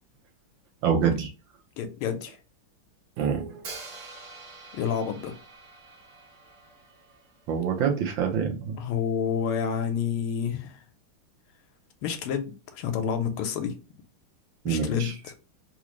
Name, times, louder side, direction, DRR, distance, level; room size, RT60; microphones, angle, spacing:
voice 1, 0.8-1.3 3.2-3.6 7.5-8.8 14.6-15.1, right 7 dB, 70° right, 1.4 m, -26 dB
voice 2, 1.8-2.4 4.7-5.3 8.8-10.8 12.0-13.7 14.6-15.1, left 7 dB, 85° left, 1.5 m, -29 dB
Hi-hat, 3.6-7.6, right 3 dB, 55° right, 1.7 m, -45 dB
3.8 x 2.5 x 3.0 m
omnidirectional pair, 2.4 m